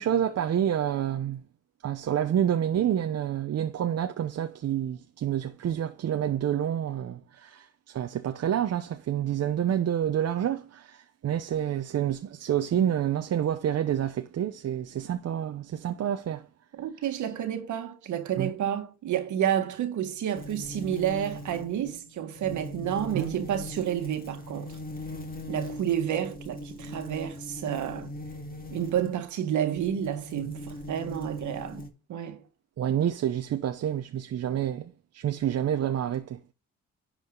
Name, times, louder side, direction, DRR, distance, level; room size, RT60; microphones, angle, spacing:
voice 1, 0.0-1.4 1.8-16.4 18.4-18.5 23.1-23.3 32.8-36.4, right 10 dB, 55° right, 0.8 m, -28 dB
voice 2, 16.8-24.8 25.5-28.1 28.7-32.4, right 10 dB, 75° right, 1.7 m, -30 dB
sound 1, 20.3-29.2 29.8-31.9, left 1 dB, 30° left, 2.1 m, -40 dB
11.0 x 5.0 x 3.8 m
cardioid pair, 90°, 30 cm